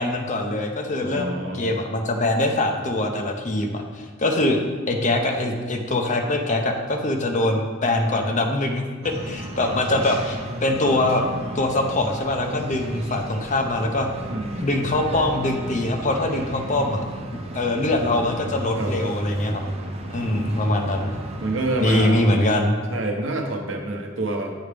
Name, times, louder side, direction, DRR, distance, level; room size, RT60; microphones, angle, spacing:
voice 1, 0.0-4.6 4.9-11.2 11.5-14.1 14.6-17.0 17.5-19.6 20.1-21.1 21.8-22.8, left 1 dB, 40° left, 3 dB, 0.7 m, -23 dB
voice 2, 1.0-1.7 9.6-9.7 14.3-14.7 18.8-19.0 20.3-20.7 21.4-22.4 22.9-24.5, right 2 dB, 75° right, 3 dB, 0.8 m, -28 dB
sound 1, 9.0-22.1, right 1 dB, 30° right, 0.7 m, -33 dB
8.3 x 4.9 x 3.3 m, 1.5 s
head